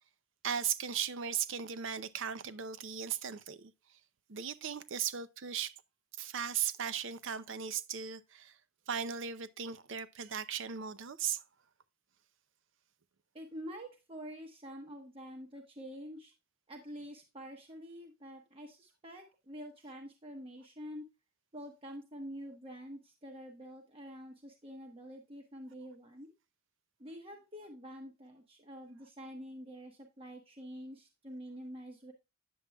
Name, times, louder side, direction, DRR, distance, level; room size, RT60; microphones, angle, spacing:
voice 1, 0.4-3.7 4.3-5.7 6.2-8.6 8.9-11.4, right 8 dB, 60° right, 0.6 m, -37 dB
voice 2, 13.3-16.3 16.7-21.0 21.5-26.3 27.0-32.1, equal, 25° right, 1.0 m, -47 dB
9.3 x 7.5 x 2.3 m
head